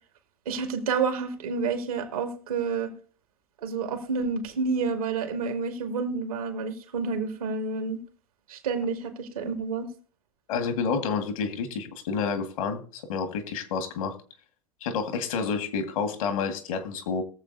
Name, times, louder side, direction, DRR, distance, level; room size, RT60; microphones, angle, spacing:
voice 1, 0.5-2.9 3.6-8.0 8.5-9.9, right 5 dB, 75° right, 5 dB, 2.3 m, -29 dB
voice 2, 10.5-14.2 14.8-17.2, left 5 dB, 65° left, 8 dB, 1.9 m, -29 dB
21.5 x 7.3 x 2.7 m, 0.41 s
hypercardioid pair, 95°, 19 cm